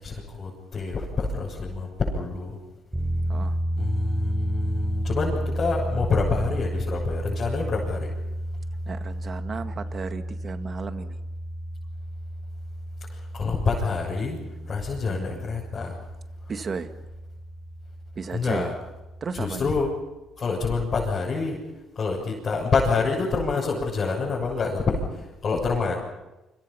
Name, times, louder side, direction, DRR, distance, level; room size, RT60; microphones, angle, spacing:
voice 1, 0.0-2.6 3.8-8.1 13.3-14.4 14.7-16.0 18.3-18.7 19.4-19.9 20.4-21.6 22.0-25.0 25.4-26.0, left 4 dB, 40° left, -5 dB, 7.2 m, -27 dB
sound 1, 2.9-19.3, equal, 10° right, 5.0 m, -32 dB
voice 2, 8.9-11.2 15.1-15.4 16.5-16.9 18.2-18.7 19.2-19.8, right 5 dB, 40° right, 8 dB, 1.9 m, -34 dB
29.0 x 26.0 x 5.8 m, 1.0 s
cardioid pair, 100°, 0 cm